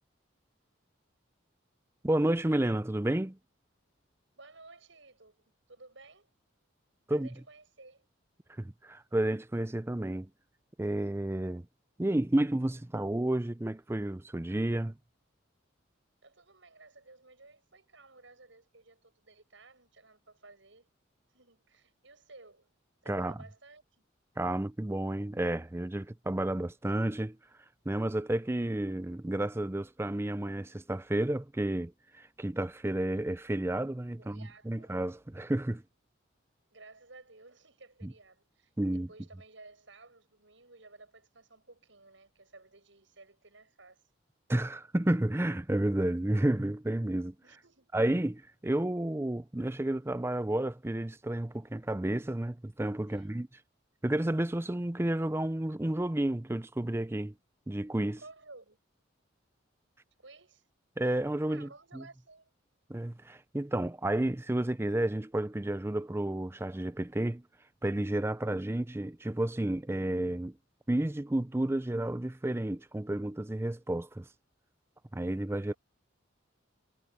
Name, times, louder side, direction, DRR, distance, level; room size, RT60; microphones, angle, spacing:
voice 1, 2.0-3.4 7.1-7.3 8.6-10.3 10.8-11.6 12.0-15.0 23.1-23.4 24.4-27.4 27.9-31.9 32.2-35.8 38.0-38.1 38.8-39.1 44.5-47.3 47.9-53.5 54.0-57.3 57.7-58.2 61.0-62.0 62.9-67.4 67.8-70.5 70.9-74.3 75.1-75.7, right 1 dB, 10° right, 0.5 m, -31 dB
voice 2, 4.4-6.3 7.1-8.1 16.2-20.9 21.3-22.7 23.0-24.0 34.2-34.9 36.7-44.0 47.4-47.9 53.1-53.4 58.2-58.8 60.2-60.7 61.4-62.5 75.6-75.8, right 3 dB, 70° right, 7.6 m, -55 dB
head